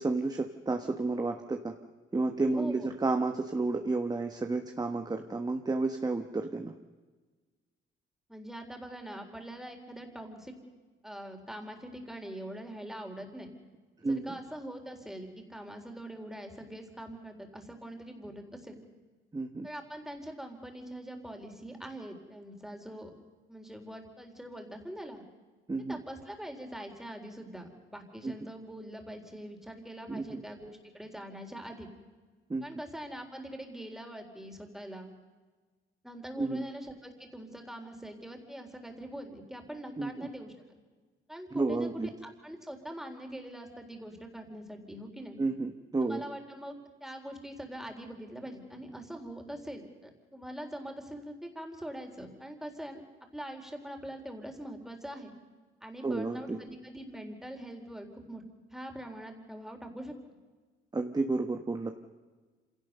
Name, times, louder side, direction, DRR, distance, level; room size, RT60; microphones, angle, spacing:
voice 1, 0.0-1.7 2.1-6.7 14.0-14.3 19.3-19.7 25.7-26.0 28.2-28.3 30.1-30.4 32.5-32.6 36.4-36.7 40.0-40.3 41.5-42.1 45.4-46.2 56.0-56.6 60.9-61.9, right 3 dB, 20° right, 5 dB, 1.3 m, -31 dB
voice 2, 2.5-2.9 8.3-10.5 11.0-13.5 14.1-18.8 19.6-23.1 23.5-25.2 25.9-31.9 32.6-35.1 36.0-40.5 41.3-41.9 42.2-45.4 46.1-53.0 53.3-55.3 55.8-58.4 58.7-60.1, right 1 dB, ahead, 4 dB, 3.9 m, -43 dB
26.5 x 17.5 x 6.7 m, 1.4 s
cardioid pair, 90°, 20 cm